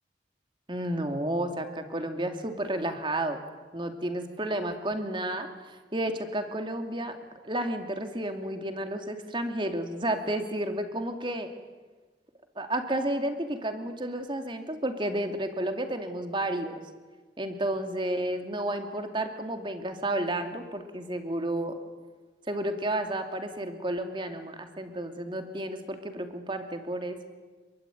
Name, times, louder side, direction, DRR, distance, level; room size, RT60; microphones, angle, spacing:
voice 1, 0.7-3.4 3.7-7.2 7.4-11.5 12.6-16.7 17.4-21.7 22.5-27.2, right 1 dB, 25° right, 5 dB, 2.7 m, -31 dB
26.5 x 23.5 x 9.3 m, 1.4 s
head